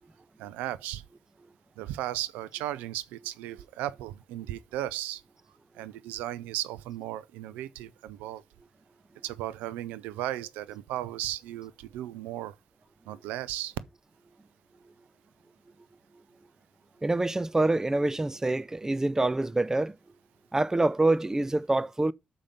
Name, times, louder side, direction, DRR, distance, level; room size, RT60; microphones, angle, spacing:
voice 1, 0.4-1.0 1.8-5.2 5.7-8.4 9.2-12.5 13.1-13.7, right 13 dB, 90° right, 0.5 m, -35 dB
voice 2, 17.0-19.9 20.5-22.1, right 2 dB, 20° right, 0.6 m, -26 dB
6.8 x 5.1 x 5.8 m
supercardioid pair, 45°, 3 cm